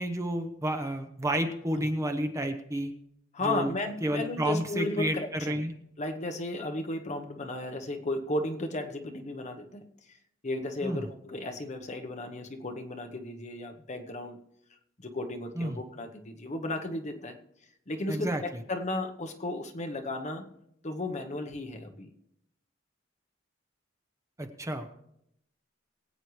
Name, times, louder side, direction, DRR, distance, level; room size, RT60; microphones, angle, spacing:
voice 1, 0.0-2.9 3.4-3.7 4.0-5.7 10.8-11.0 15.6-15.8 18.1-18.4 24.4-24.9, right 1 dB, 15° right, 7 dB, 0.9 m, -30 dB
voice 2, 3.3-5.6 6.0-10.2 10.4-14.4 15.0-17.4 17.9-20.5 20.8-22.1, left 2 dB, 35° left, 5 dB, 1.0 m, -34 dB
22.5 x 8.7 x 3.2 m, 0.76 s
head